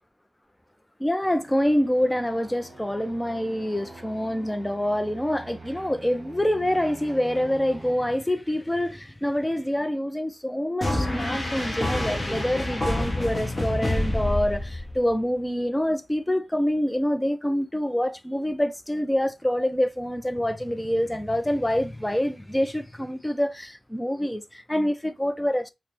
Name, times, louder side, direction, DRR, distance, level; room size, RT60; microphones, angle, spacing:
voice 1, 1.0-25.7, equal, 10° left, 0.4 m, -26 dB
sound 1, 1.2-7.9, right 2 dB, 15° right, 1.2 m, -45 dB
sound 2, 10.8-15.1, left 1 dB, 25° left, 0.8 m, -27 dB
4.3 x 2.0 x 3.2 m
wide cardioid pair, 135°, 0 cm